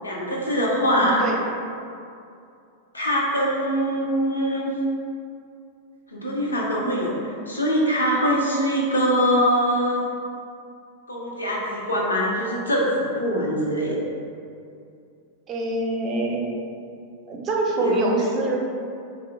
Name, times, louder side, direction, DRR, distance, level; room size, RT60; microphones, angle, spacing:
voice 1, 0.0-1.2 2.9-4.7 6.1-10.0 11.1-14.0 17.8-18.2, equal, 80° left, -3 dB, 0.7 m, -23 dB
voice 2, 0.8-1.3 15.5-16.4 17.3-18.6, right 2 dB, 30° right, -1 dB, 0.6 m, -25 dB
3.6 x 2.0 x 4.4 m, 2.5 s
figure-of-eight pair, 90°, 0 cm